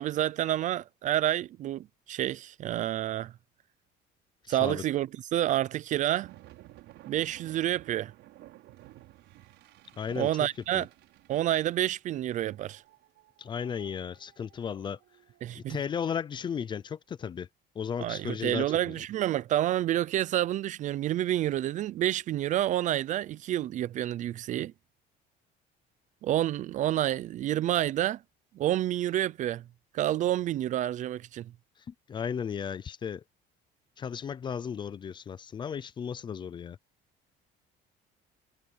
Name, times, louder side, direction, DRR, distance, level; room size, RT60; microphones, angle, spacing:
voice 1, 0.0-3.3 4.5-6.3 7.1-8.1 10.1-10.9 11.3-12.8 15.4-15.8 18.0-24.7 26.2-28.2 28.5-29.6 29.9-31.5, right 12 dB, 40° right, 0.4 m, -29 dB
voice 2, 4.4-4.8 10.0-10.3 10.7-10.8 13.4-15.0 15.5-17.5 17.8-19.0 31.9-33.2 34.0-36.8, left 7 dB, 25° left, 0.5 m, -35 dB
sound 1, 6.0-16.6, right 16 dB, 65° right, 6.3 m, -55 dB
cardioid pair, 180°, 20 cm